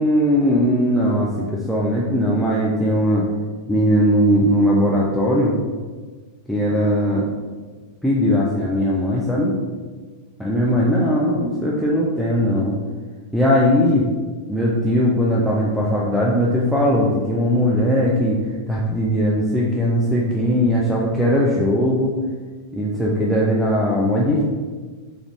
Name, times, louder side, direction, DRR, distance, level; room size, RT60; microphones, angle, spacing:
voice 1, 0.0-3.3 3.7-5.6 6.5-7.3 8.0-9.6 10.4-12.8 13.3-14.1 14.5-18.4 18.7-22.1 22.7-24.4, equal, ahead, -6 dB, 0.4 m, -19 dB
3.5 x 2.4 x 3.1 m, 1.4 s
figure-of-eight pair, 90°, 0 cm